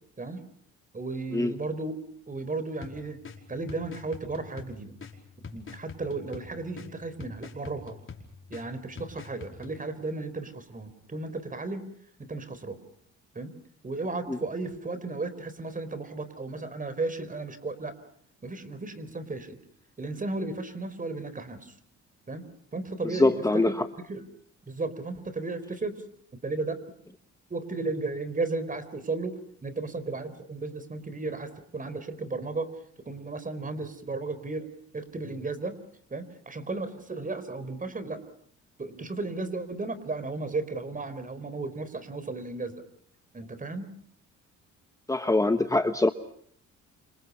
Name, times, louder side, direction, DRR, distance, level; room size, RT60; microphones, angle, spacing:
voice 1, 0.9-2.0 2.3-3.2 3.5-5.0 5.5-8.0 8.5-11.9 12.2-12.8 13.3-13.5 13.8-17.9 18.4-19.6 20.0-21.7 22.3-22.4 22.7-23.3 23.7-23.8 24.1-24.2 24.7-26.0 26.4-26.8 27.5-32.7 33.1-35.8 36.1-38.2 38.8-42.8 43.3-43.9, right 3 dB, 25° right, 13 dB, 4.5 m, -34 dB
sound 1, 2.8-9.8, left 4 dB, 45° left, 5.0 m, -45 dB
voice 2, 23.0-23.9 45.1-46.1, left 2 dB, 10° left, 9 dB, 1.3 m, -23 dB
28.5 x 27.0 x 5.7 m, 0.63 s
cardioid pair, 90°, 30 cm